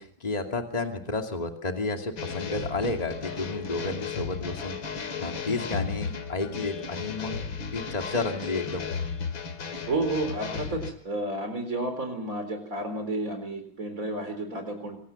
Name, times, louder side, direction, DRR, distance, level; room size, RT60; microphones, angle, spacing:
voice 1, 0.0-7.4 7.7-8.9, left 3 dB, 20° left, 3 dB, 2.5 m, -31 dB
sound 1, 2.2-10.9, left 5 dB, 90° left, 3.0 m, -34 dB
voice 2, 9.9-15.0, right 2 dB, 45° right, 6 dB, 4.4 m, -31 dB
26.5 x 17.5 x 7.1 m, 0.62 s
omnidirectional pair, 2.1 m